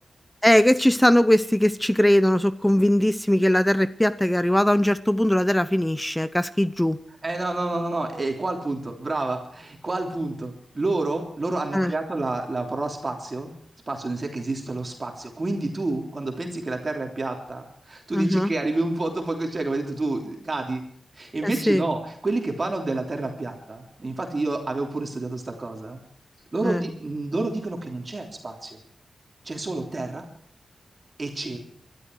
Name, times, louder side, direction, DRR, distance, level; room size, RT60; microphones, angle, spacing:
voice 1, 0.4-7.0 11.7-11.9 18.1-18.5 21.4-21.8 26.6-26.8, left 1 dB, 5° left, 14 dB, 0.7 m, -20 dB
voice 2, 7.2-13.5 13.9-20.8 21.1-26.0 26.5-28.8 29.4-30.2 31.2-31.6, right 2 dB, 35° right, 2 dB, 3.2 m, -29 dB
23.0 x 13.0 x 4.7 m, 0.64 s
wide cardioid pair, 110°, 0 cm